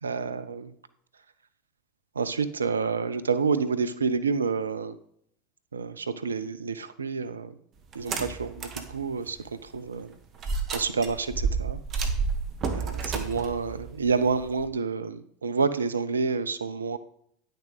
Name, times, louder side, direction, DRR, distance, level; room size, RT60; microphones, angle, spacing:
voice 1, 0.0-0.7 2.2-5.0 5.7-7.6 7.9-10.2 10.7-12.1 12.7-17.0, right 5 dB, 80° right, 13 dB, 0.5 m, -29 dB
sound 1, 7.9-8.9 9.4-9.5 10.4-14.7, right 5 dB, 40° right, 1.3 m, -30 dB
10.0 x 6.5 x 4.0 m, 0.68 s
figure-of-eight pair, 75°, 0 cm